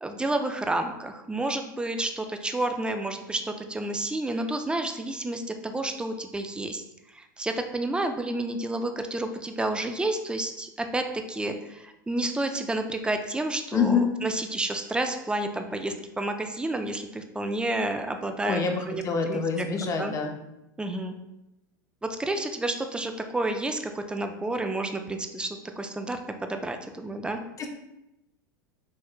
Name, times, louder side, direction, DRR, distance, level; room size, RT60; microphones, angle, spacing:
voice 1, 0.0-6.8 7.1-19.0 19.3-20.1 20.8-21.2 22.0-27.4, right 2 dB, 10° right, 6 dB, 0.4 m, -30 dB
voice 2, 13.7-14.1 18.4-20.3 27.6-27.7, left 5 dB, 30° left, 4 dB, 0.6 m, -26 dB
4.5 x 3.2 x 2.4 m, 0.91 s
hypercardioid pair, 90°, 11 cm